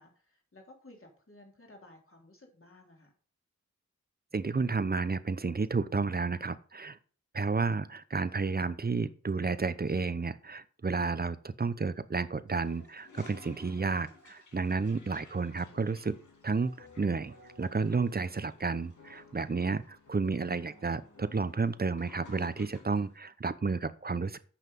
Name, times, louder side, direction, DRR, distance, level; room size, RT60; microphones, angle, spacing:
voice 1, 0.0-3.1 19.4-19.7, left 2 dB, 45° left, 1 dB, 3.1 m, -56 dB
voice 2, 4.3-7.0 7.3-16.2 16.4-19.8 20.1-24.4, right 4 dB, 30° right, 14 dB, 0.7 m, -31 dB
Toilet flush, 12.5-23.1, left 3 dB, 85° left, 2.2 m, -57 dB
sound 1, 15.5-21.6, left 2 dB, 70° left, 1.9 m, -57 dB
8.4 x 5.8 x 5.3 m, 0.41 s
wide cardioid pair, 55°, 29 cm